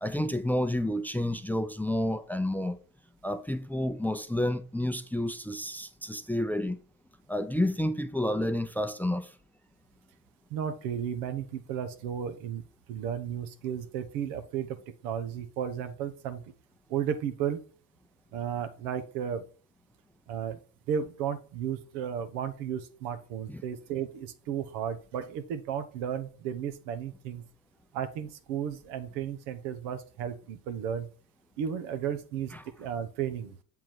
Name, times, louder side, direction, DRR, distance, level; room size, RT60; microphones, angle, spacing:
voice 1, 0.0-2.8 3.2-6.8 7.3-9.3 23.5-23.6 32.5-32.6, left 1 dB, 5° left, 0.6 m, -30 dB
voice 2, 10.5-12.6 12.9-14.8 15.0-16.4 16.9-17.6 18.3-19.4 20.3-20.6 20.9-27.4 27.9-31.1 31.6-32.5 32.8-33.6, right 8 dB, 80° right, 1.0 m, -34 dB
7.4 x 3.7 x 4.6 m
hypercardioid pair, 60°, 47 cm